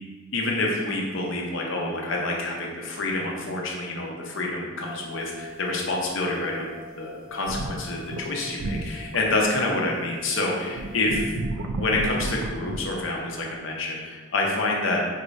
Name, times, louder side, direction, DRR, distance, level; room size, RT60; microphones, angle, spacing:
voice 1, 0.3-11.3 11.8-15.2, left 2 dB, 65° left, -1 dB, 0.7 m, -27 dB
sound 1, 4.8-11.4, left 4 dB, 45° right, 1.1 m, -46 dB
sound 2, 7.3-8.3 8.6-9.6 10.1-10.2 10.7-12.8, right 2 dB, 85° right, 0.4 m, -32 dB
4.6 x 3.1 x 2.6 m, 1.4 s
head